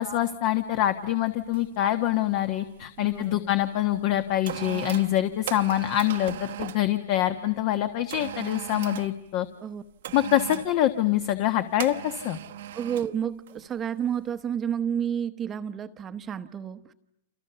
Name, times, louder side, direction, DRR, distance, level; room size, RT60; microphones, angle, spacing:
voice 1, 0.0-9.5 10.1-12.4, left 13 dB, 40° left, 10 dB, 1.3 m, -25 dB
sound 1, 0.7-0.9 1.5-1.8 2.1-3.3 3.9-6.9 8.1-9.2 10.0-10.7 11.8-13.1 13.5-13.7, right 12 dB, 65° right, 1.1 m, -38 dB
voice 2, 3.0-3.5 9.6-9.8 12.7-16.8, right 8 dB, 20° right, 11 dB, 1.0 m, -30 dB
29.0 x 28.0 x 6.9 m, 0.77 s
hypercardioid pair, 150°, 0 cm